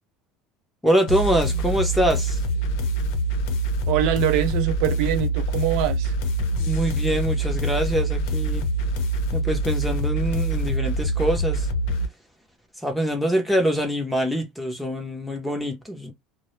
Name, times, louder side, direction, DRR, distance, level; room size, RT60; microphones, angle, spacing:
voice 1, 0.8-2.4 6.6-8.7 9.3-11.7 12.8-16.1, right 1 dB, 5° left, 0.6 m, -24 dB
sound 1, 1.1-12.0, right 1 dB, 75° left, 0.6 m, -25 dB
voice 2, 3.9-6.1, right 11 dB, 65° right, 0.4 m, -23 dB
2.1 x 2.0 x 3.0 m
cardioid pair, 150°, 0 cm